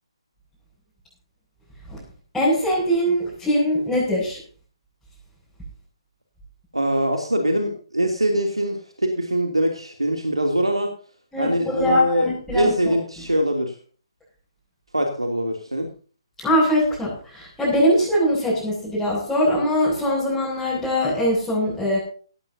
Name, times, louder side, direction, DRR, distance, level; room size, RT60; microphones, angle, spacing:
voice 1, 2.3-4.4 11.3-11.5 11.8-12.7 16.4-22.0, equal, 5° left, -9 dB, 7.5 m, -21 dB
voice 2, 6.7-10.9 11.4-13.8 14.9-15.9, equal, 85° right, 3 dB, 2.8 m, -23 dB
18.0 x 15.0 x 2.8 m, 0.41 s
figure-of-eight pair, 135°, 3 cm